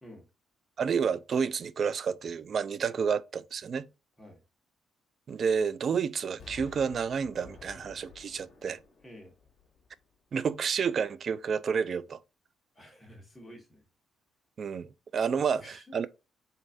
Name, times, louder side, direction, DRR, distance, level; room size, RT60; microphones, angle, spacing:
voice 1, 0.8-3.9 5.3-8.8 10.3-12.2 14.6-16.1, right 6 dB, 50° right, 0.4 m, -30 dB
Explosion, 6.4-10.3 10.8-10.9, left 5 dB, 50° left, 1.5 m, -52 dB
voice 2, 9.0-9.3 12.7-13.8 15.5-16.1, equal, 10° left, 1.6 m, -50 dB
3.9 x 3.2 x 2.6 m
cardioid pair, 90°, 0 cm